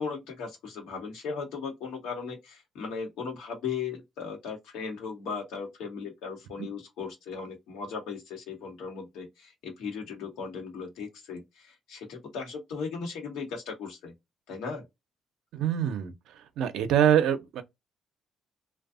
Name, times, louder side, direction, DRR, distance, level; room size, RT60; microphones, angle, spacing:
voice 1, 0.0-14.1 14.5-14.8, left 5 dB, 90° left, 1.0 m, -37 dB
voice 2, 15.5-16.1 16.6-17.6, right 10 dB, 80° right, 0.5 m, -24 dB
2.6 x 2.2 x 2.4 m
cardioid pair, 85°, 0 cm